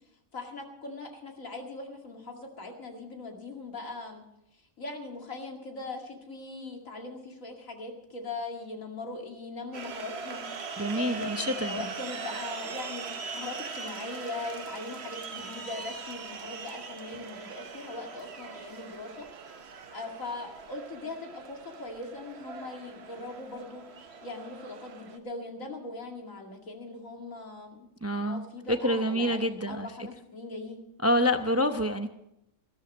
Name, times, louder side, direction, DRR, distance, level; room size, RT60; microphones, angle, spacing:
voice 1, 0.3-4.2 4.8-13.1 13.3-19.3 19.9-27.9 28.1-30.8, left 3 dB, 85° left, 2 dB, 2.7 m, -40 dB
sound 1, 9.7-25.2, right 5 dB, 55° right, 1.3 m, -41 dB
voice 2, 10.8-11.9 28.0-29.9 31.0-32.1, equal, 15° right, 7 dB, 0.5 m, -27 dB
15.0 x 13.0 x 5.3 m, 0.81 s
omnidirectional pair, 1.4 m